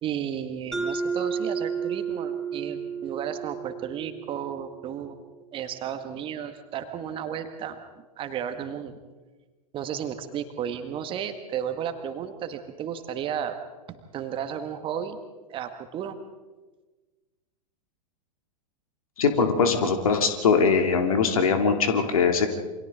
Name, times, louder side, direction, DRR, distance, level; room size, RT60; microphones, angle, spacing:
voice 1, 0.0-5.2 5.5-7.8 8.2-9.0 9.7-13.6 14.1-15.2 15.5-16.2, right 9 dB, 25° right, 8 dB, 1.7 m, -33 dB
Mallet percussion, 0.7-5.3, right 5 dB, ahead, 4.2 m, -32 dB
voice 2, 19.2-22.5, left 5 dB, 60° left, 5 dB, 2.6 m, -21 dB
28.5 x 24.5 x 3.7 m, 1.2 s
figure-of-eight pair, 100°, 20 cm